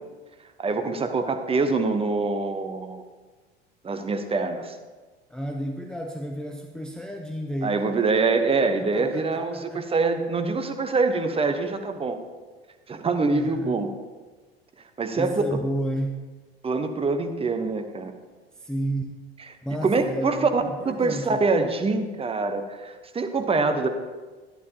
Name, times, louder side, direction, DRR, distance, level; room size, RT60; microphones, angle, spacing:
voice 1, 0.6-3.0 3.8-4.8 7.6-12.2 12.9-13.9 15.0-15.3 16.6-18.1 19.8-23.9, right 3 dB, 20° right, 7 dB, 0.9 m, -25 dB
voice 2, 5.3-7.9 8.9-9.8 13.3-13.8 15.1-16.2 18.5-19.2 19.6-21.5, right 1 dB, ahead, 2 dB, 0.6 m, -32 dB
11.5 x 10.5 x 2.9 m, 1.3 s
figure-of-eight pair, 70°, 30 cm